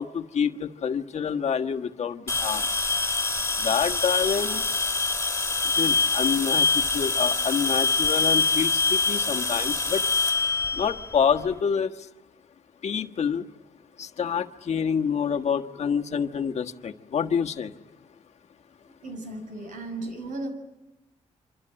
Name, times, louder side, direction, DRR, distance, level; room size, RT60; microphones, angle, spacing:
voice 1, 0.0-2.6 3.6-4.9 5.8-6.7 6.9-10.0 10.8-11.9 12.8-13.5 14.0-17.7, left 7 dB, 60° left, 6 dB, 1.5 m, -27 dB
sound 1, 2.3-11.5, left 3 dB, 20° left, 2.4 m, -25 dB
voice 2, 19.0-20.5, right 2 dB, 85° right, 7 dB, 7.0 m, -35 dB
26.0 x 26.0 x 8.9 m, 1.0 s
cardioid pair, 125°, 13 cm